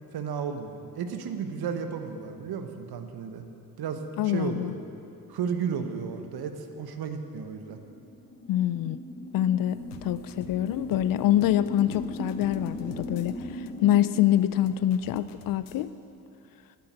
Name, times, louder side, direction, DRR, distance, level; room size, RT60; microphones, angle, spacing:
voice 1, 0.1-3.4 3.8-4.7 5.3-7.8, right 6 dB, 55° right, 7 dB, 1.3 m, -33 dB
voice 2, 4.2-4.8 8.5-9.0 9.3-15.9, left 12 dB, 50° left, 15 dB, 0.5 m, -25 dB
sound 1, 7.7-14.3, left 1 dB, 20° left, 1.2 m, -39 dB
sound 2, 9.7-15.9, left 7 dB, 90° left, 0.8 m, -48 dB
9.7 x 8.7 x 8.1 m, 2.7 s
hypercardioid pair, 55°, 45 cm